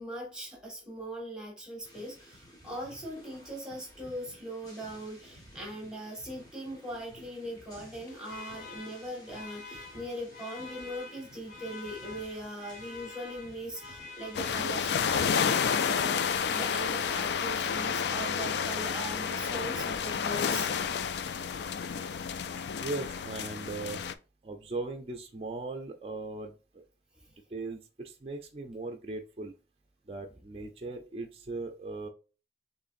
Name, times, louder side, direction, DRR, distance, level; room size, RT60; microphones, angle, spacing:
voice 1, 0.0-20.7, right 1 dB, 5° right, -2 dB, 1.5 m, -40 dB
sound 1, 1.8-15.4, equal, 20° left, 1.5 m, -54 dB
Alarm, 7.8-17.3, left 3 dB, 45° left, 0.8 m, -47 dB
sound 2, 14.3-24.1, left 7 dB, 70° left, 0.3 m, -30 dB
voice 2, 22.8-24.0 24.4-26.8 27.5-29.5 30.1-32.1, right 3 dB, 35° right, 4 dB, 0.4 m, -38 dB
6.5 x 3.1 x 2.5 m, 0.34 s
head